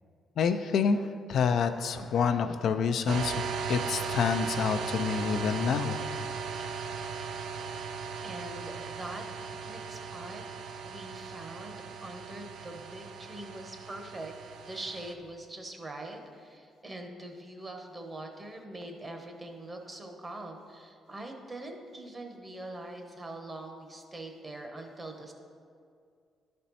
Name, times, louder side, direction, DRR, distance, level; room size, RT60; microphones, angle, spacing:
voice 1, 0.4-1.0 1.3-6.0, left 6 dB, 65° left, 8 dB, 0.4 m, -27 dB
sound 1, 3.1-15.1, right 5 dB, 70° right, 0.5 m, -37 dB
voice 2, 8.2-9.2 9.6-10.4 10.8-14.3 14.7-25.3, right 1 dB, 25° right, 3 dB, 1.0 m, -43 dB
11.0 x 4.3 x 4.1 m, 2.3 s
cardioid pair, 90°, 0 cm